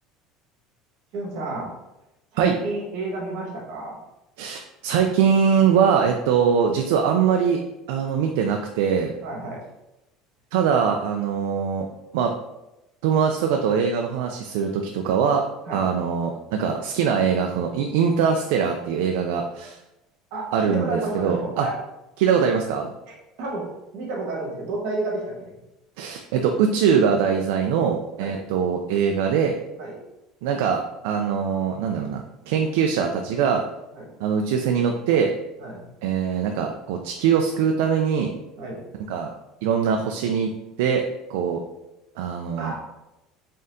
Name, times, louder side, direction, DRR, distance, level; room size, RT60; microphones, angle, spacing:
voice 1, 1.1-1.7 2.3-4.0 9.2-9.6 15.7-15.8 20.3-21.7 23.1-25.5 28.2-28.4 29.8-30.0 33.9-34.1 35.6-35.9 38.6-38.8 42.6-42.8, right 2 dB, 65° right, -2 dB, 1.4 m, -31 dB
voice 2, 4.4-7.6 7.9-9.1 10.5-12.3 13.0-15.4 15.7-19.8 20.5-21.7 22.2-22.9 26.0-29.5 30.4-33.6 34.2-35.3 36.0-38.3 39.1-39.3 39.6-41.0 41.3-41.6 42.2-42.7, right 7 dB, 80° right, 3 dB, 0.3 m, -22 dB
4.1 x 3.6 x 2.6 m, 0.96 s
cardioid pair, 175°, 0 cm